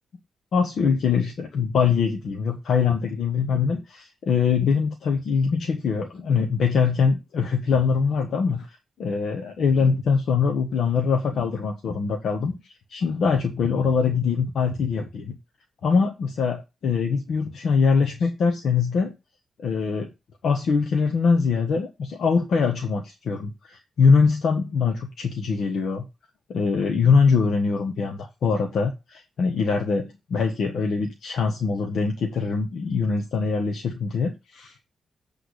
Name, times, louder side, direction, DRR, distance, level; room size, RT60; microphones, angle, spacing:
voice 1, 0.5-8.7 9.0-15.4 15.8-19.1 19.6-20.1 20.4-26.1 26.5-34.8, left 5 dB, 65° left, 3 dB, 1.1 m, -23 dB
8.3 x 3.5 x 6.4 m, 0.26 s
wide cardioid pair, 160°, 0 cm